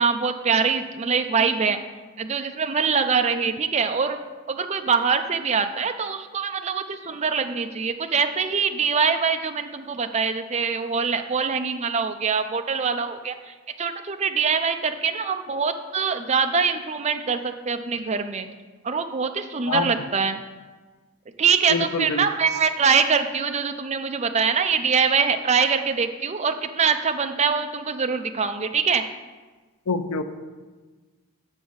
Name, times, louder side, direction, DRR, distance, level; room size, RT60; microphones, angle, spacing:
voice 1, 0.0-1.8 2.2-4.2 4.5-18.5 18.8-20.4 21.4-29.0, right 5 dB, 30° right, 7 dB, 0.5 m, -24 dB
voice 2, 21.7-22.2 29.9-30.2, left 4 dB, 90° left, 9 dB, 0.6 m, -25 dB
7.3 x 5.4 x 6.2 m, 1.3 s
head